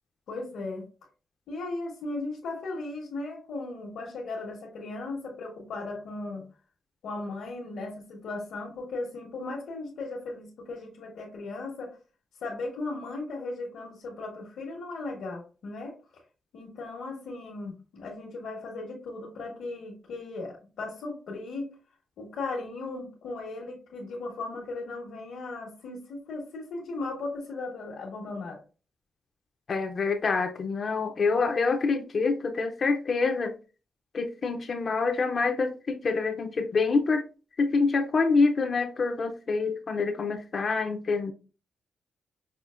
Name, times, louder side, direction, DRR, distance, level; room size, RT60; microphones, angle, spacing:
voice 1, 0.3-0.9 1.5-6.5 7.0-12.0 12.4-15.9 16.5-21.7 22.2-28.6, left 3 dB, 80° left, 1.1 m, -37 dB
voice 2, 29.7-33.6 34.1-37.2 37.6-41.3, left 4 dB, 40° left, 0.4 m, -26 dB
5.5 x 2.4 x 2.4 m
wide cardioid pair, 165°, 0 cm